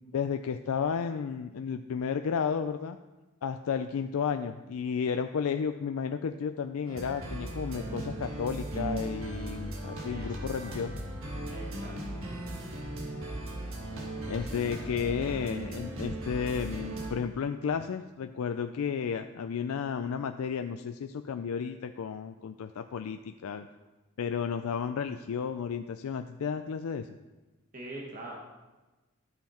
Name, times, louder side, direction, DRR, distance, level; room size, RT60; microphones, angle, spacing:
voice 1, 0.0-3.0 3.4-11.0 14.3-23.7 24.2-27.2, left 6 dB, 85° left, 8 dB, 0.4 m, -33 dB
sound 1, 6.9-17.1, right 1 dB, 70° right, 1.5 m, -37 dB
voice 2, 10.0-10.8 11.5-12.2 27.7-28.3, right 1 dB, 40° right, -2 dB, 1.5 m, -44 dB
13.0 x 5.8 x 4.3 m, 1.1 s
head